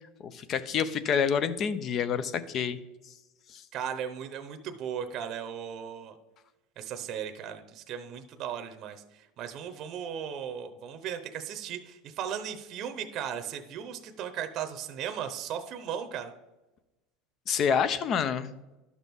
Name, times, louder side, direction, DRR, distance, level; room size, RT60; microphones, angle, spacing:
voice 1, 0.2-2.8 3.5-3.6 17.5-18.5, left 7 dB, 35° left, 14 dB, 0.6 m, -28 dB
voice 2, 3.7-6.1 6.8-16.3, right 8 dB, 40° right, 7 dB, 0.8 m, -37 dB
12.0 x 6.0 x 3.6 m, 1.0 s
supercardioid pair, 150°, 0 cm